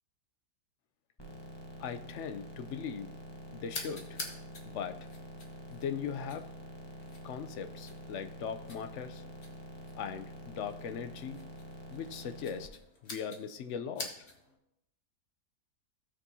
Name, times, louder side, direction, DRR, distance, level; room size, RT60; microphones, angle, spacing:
sound 1, 1.2-12.7, equal, 20° left, 0.9 m, -47 dB
voice 1, 1.8-3.1 3.5-4.2 4.7-5.0 5.7-6.4 7.2-9.2 10.0-11.4 11.9-12.7 13.0-14.3, left 7 dB, 65° left, 8 dB, 0.8 m, -39 dB
sound 2, 3.7-14.6, left 3 dB, 45° left, 1.4 m, -48 dB
16.0 x 6.2 x 2.7 m, 0.80 s
omnidirectional pair, 1.8 m